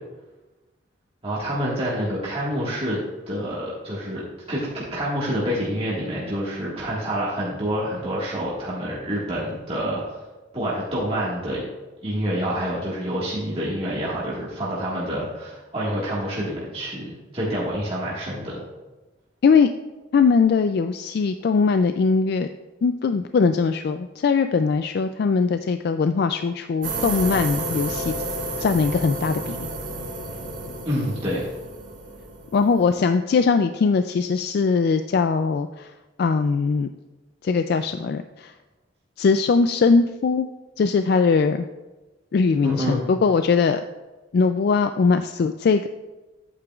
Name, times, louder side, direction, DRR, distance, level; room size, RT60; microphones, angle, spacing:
voice 1, 1.2-3.0 3.3-4.2 4.5-10.0 10.5-11.6 12.0-18.6 30.8-31.4 42.6-43.0, equal, 30° right, -7 dB, 1.7 m, -27 dB
voice 2, 20.1-22.5 22.8-28.1 28.6-29.7 32.5-35.9 36.2-36.9 37.4-38.5 39.2-40.5 40.8-41.7 42.3-43.8 44.3-45.9, left 5 dB, 55° left, 9 dB, 0.3 m, -20 dB
sound 1, 26.8-32.9, right 2 dB, 85° right, 2.3 m, -31 dB
9.8 x 8.8 x 2.4 m, 1.1 s
head